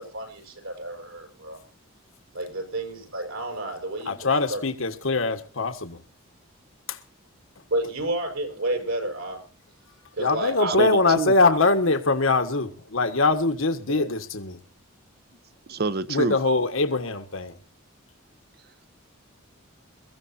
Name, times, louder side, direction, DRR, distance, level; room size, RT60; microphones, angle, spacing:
voice 1, 0.0-1.6 2.3-4.6 7.7-9.4 10.2-10.8 11.1-11.2 11.5-11.6 13.9-14.1, right 1 dB, 80° right, 5.8 m, -31 dB
voice 2, 4.0-6.0 6.9-7.0 10.2-14.6 16.1-17.5, left 3 dB, 70° left, 1.6 m, -23 dB
voice 3, 10.8-11.3 15.7-16.4, right 3 dB, 50° right, 0.7 m, -26 dB
23.0 x 14.5 x 2.7 m
head